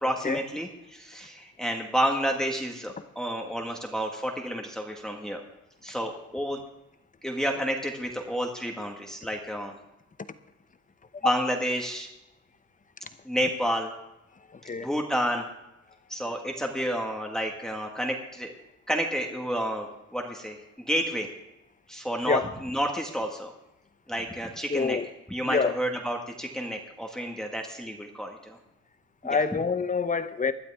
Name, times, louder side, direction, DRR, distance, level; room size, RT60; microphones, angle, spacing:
voice 1, 0.0-5.4 5.8-6.6 7.2-9.7 11.2-12.1 13.2-13.9 14.8-15.5 16.1-18.5 18.9-20.6 20.9-21.3 21.9-23.5 24.1-25.0 25.3-28.6 29.3-29.4, equal, ahead, 1.8 m, -30 dB
voice 2, 14.5-14.9 22.3-22.4 24.7-25.1 25.5-25.8 29.2-30.5, left 5 dB, 25° left, 0.8 m, -26 dB
20.0 x 12.0 x 3.6 m
cardioid pair, 90°, 30 cm